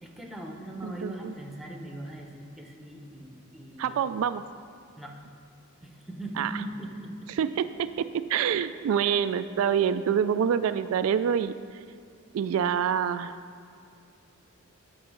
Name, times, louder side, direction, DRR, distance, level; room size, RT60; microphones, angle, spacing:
voice 1, 0.0-4.0 5.0-5.2 5.8-7.3, right 1 dB, ahead, 1 dB, 0.9 m, -40 dB
voice 2, 0.8-1.3 3.8-4.4 6.4-6.5 7.4-11.8 12.3-13.4, right 8 dB, 80° right, 12 dB, 0.3 m, -26 dB
9.6 x 5.5 x 6.4 m, 2.4 s
head